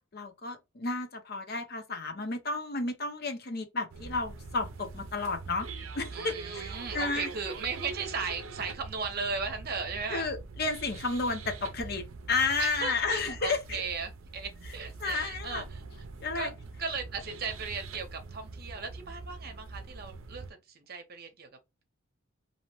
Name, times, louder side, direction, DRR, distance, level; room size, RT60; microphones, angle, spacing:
voice 1, 0.0-5.7 5.9-7.3 10.1-13.8 15.0-15.6 16.2-16.5, left 3 dB, 50° left, 0.7 m, -32 dB
sound 1, 3.9-20.5, right 4 dB, 80° right, 0.5 m, -43 dB
voice 2, 6.1-10.3 12.6-15.8 16.3-16.5 16.8-21.5, right 5 dB, 50° right, 0.7 m, -36 dB
2.7 x 2.1 x 2.9 m
head